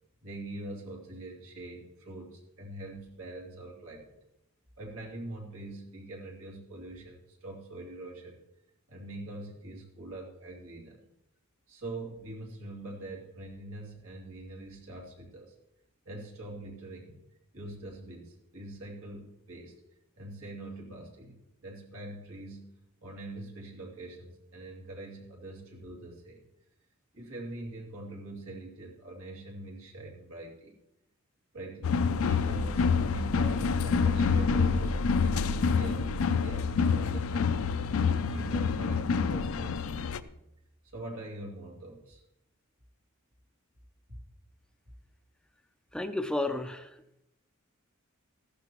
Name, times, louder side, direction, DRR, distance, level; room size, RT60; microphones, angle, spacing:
voice 1, 0.2-4.1 4.8-8.4 8.9-11.0 11.7-15.5 16.0-17.2 17.5-19.8 20.2-22.7 23.0-26.4 27.1-30.8 31.5-40.3 40.8-42.2, right 2 dB, 85° right, -1 dB, 2.6 m, -44 dB
sound 1, 31.8-40.2, left 5 dB, 70° left, 0.5 m, -27 dB
voice 2, 45.9-46.9, left 2 dB, 5° left, 8 dB, 0.5 m, -32 dB
14.5 x 11.5 x 3.0 m, 0.85 s
head